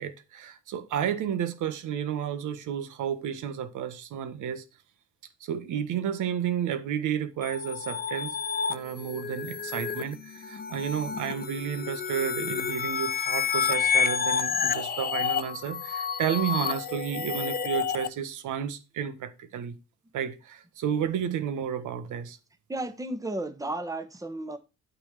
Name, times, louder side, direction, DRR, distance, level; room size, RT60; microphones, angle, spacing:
voice 1, 0.0-4.6 5.4-8.3 8.7-19.7 20.1-22.4, right 9 dB, 85° right, 1.4 m, -31 dB
sound 1, 7.4-18.1, left 7 dB, 30° left, 0.7 m, -30 dB
voice 2, 22.7-24.6, right 2 dB, 10° right, 1.2 m, -33 dB
9.0 x 4.5 x 6.8 m
cardioid pair, 90°, 30 cm